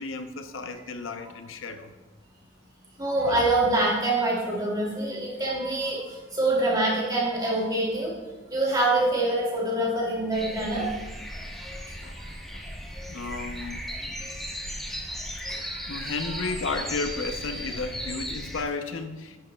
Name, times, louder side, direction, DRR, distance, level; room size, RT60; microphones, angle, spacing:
voice 1, 0.0-1.9 3.2-3.5 11.4-11.5 12.0-12.2 12.5-12.6 13.1-13.8 15.1-15.2 15.9-19.4, left 3 dB, 90° left, 7 dB, 0.7 m, -33 dB
voice 2, 3.0-6.0 6.3-8.1 8.5-10.9 16.3-16.4, right 2 dB, 20° right, -4 dB, 2.6 m, -25 dB
sound 1, 10.3-18.6, equal, ahead, 0.9 m, -36 dB
11.0 x 10.5 x 2.3 m, 1.2 s
head